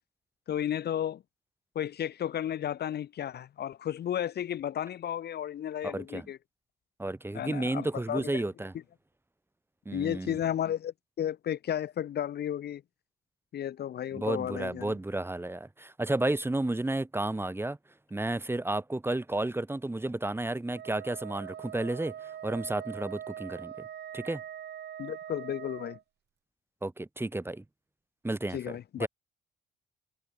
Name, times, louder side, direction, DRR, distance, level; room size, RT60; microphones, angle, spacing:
voice 1, 0.5-1.2 1.7-6.4 7.3-8.4 9.9-12.8 13.5-14.9 25.0-26.0 28.5-29.1, left 10 dB, 55° left, 0.7 m, -33 dB
voice 2, 5.8-6.3 7.0-8.7 9.9-10.4 14.1-17.8 18.1-23.9 24.1-24.4 26.8-27.6 28.2-29.1, right 2 dB, 10° right, 1.6 m, -32 dB
Wind instrument woodwind instrument, 20.7-26.0, right 10 dB, 55° right, 1.1 m, -42 dB
cardioid pair, 90°, 20 cm